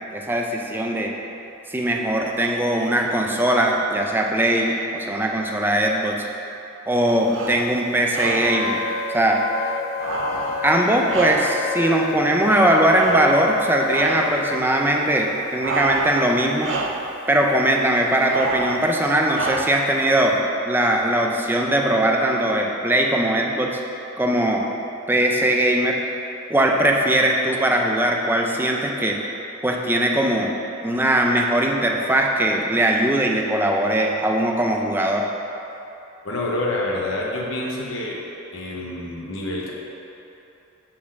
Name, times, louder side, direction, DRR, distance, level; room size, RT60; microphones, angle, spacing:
voice 1, 0.1-1.1 1.7-6.3 6.9-8.8 9.1-9.4 10.6-16.7 17.3-20.4 20.6-23.8 24.2-24.7 25.1-26.0 26.5-29.2 29.6-30.5 30.8-35.3, right 1 dB, 10° right, 0 dB, 0.5 m, -20 dB
sound 1, 7.2-7.7 8.1-8.7 10.0-11.8 12.9-13.6 13.9-14.4 15.6-16.3 16.6-17.1 18.3-18.9 19.3-19.9, right 2 dB, 65° right, 0.5 m, -28 dB
Wind instrument woodwind instrument, 8.4-14.6, left 5 dB, 55° left, 0.3 m, -29 dB
voice 2, 36.2-38.2 38.5-39.7, left 2 dB, 70° left, -3 dB, 0.9 m, -27 dB
5.9 x 4.2 x 6.2 m, 2.9 s
head